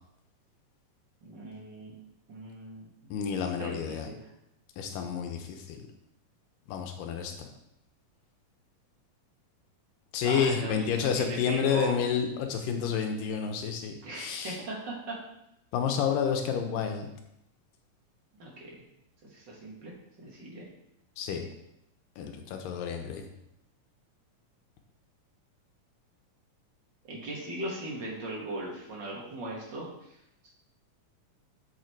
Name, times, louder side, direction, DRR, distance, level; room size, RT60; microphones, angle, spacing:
voice 1, 1.2-1.9 2.3-2.9 3.3-4.3 10.2-12.0 14.0-15.2 18.4-18.8 19.3-19.9 20.2-20.7 27.1-30.2, right 2 dB, 40° right, -3 dB, 2.3 m, -39 dB
voice 2, 3.1-4.1 4.8-5.8 6.7-7.5 10.1-14.6 15.7-17.1 21.2-21.4 22.2-23.3, left 7 dB, 85° left, 5 dB, 2.5 m, -30 dB
7.8 x 6.6 x 4.5 m, 0.81 s
omnidirectional pair, 3.8 m